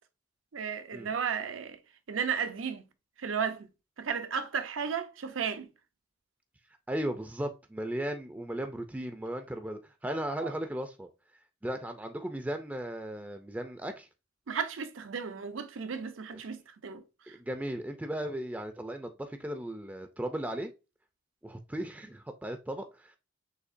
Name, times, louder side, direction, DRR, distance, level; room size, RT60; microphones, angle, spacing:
voice 1, 0.5-1.8 2.1-2.8 3.2-3.7 4.0-5.7 10.4-10.5 14.5-17.0, right 6 dB, 85° right, 0.6 m, -34 dB
voice 2, 6.9-11.1 11.6-14.1 17.3-20.7 21.4-23.1, right 1 dB, 10° right, 0.4 m, -36 dB
6.5 x 2.7 x 2.5 m
head